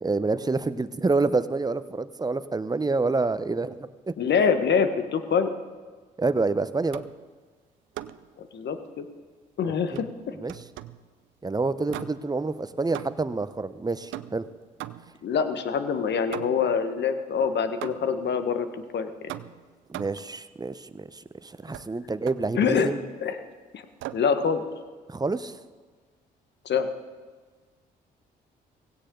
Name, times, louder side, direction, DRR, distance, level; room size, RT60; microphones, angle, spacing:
voice 1, 0.0-4.1 6.2-7.0 9.6-10.0 10.4-10.5 11.4-14.5 19.9-23.0 25.1-25.6, right 3 dB, 20° right, 13 dB, 0.9 m, -28 dB
voice 2, 4.2-5.5 8.4-9.1 9.6-10.3 15.2-18.7 18.9-19.1 22.5-22.9 23.2-23.4 23.7-23.8 24.1-24.6 26.6-26.9, left 6 dB, 60° left, 9 dB, 1.4 m, -25 dB
sound 1, 6.9-7.3 7.9-8.3 9.9-11.1 11.9-12.4 12.9-13.4 14.1-15.3 16.3-16.8 17.8-18.3 19.3-20.3 21.7-21.9 22.3-22.9 24.0-24.4, right 14 dB, 70° right, 0.6 m, -40 dB
17.5 x 16.5 x 3.9 m, 1.4 s
hypercardioid pair, 45°, 21 cm